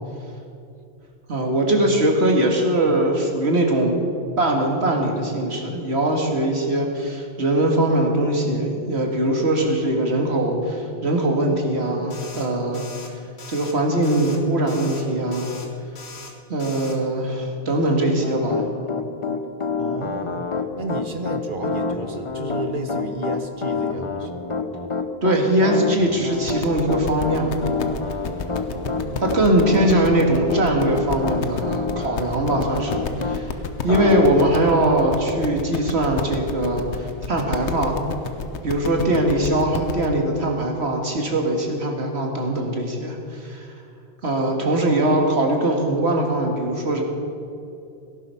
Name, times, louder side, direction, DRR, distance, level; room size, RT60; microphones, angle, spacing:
voice 1, 1.3-4.0 4.4-12.9 13.5-15.5 16.5-18.6 25.2-27.6 29.2-33.5 33.8-38.0 38.6-43.7 44.2-47.0, right 1 dB, 75° right, 1 dB, 2.3 m, -21 dB
sound 1, 12.1-12.5 12.7-13.1 13.4-13.7 14.0-14.4 14.7-15.0 15.3-15.7 15.9-16.3 16.6-17.0, left 3 dB, 70° left, 1.8 m, -40 dB
Piano, 18.2-33.4 33.9-34.3, left 4 dB, 30° left, 0.8 m, -27 dB
voice 2, 19.8-20.5 20.8-24.4 28.7-29.2, right 2 dB, 50° right, 6 dB, 1.3 m, -32 dB
sound 2, 26.3-40.1, left 5 dB, 90° left, 1.3 m, -31 dB
17.5 x 11.0 x 5.7 m, 2.7 s
omnidirectional pair, 1.1 m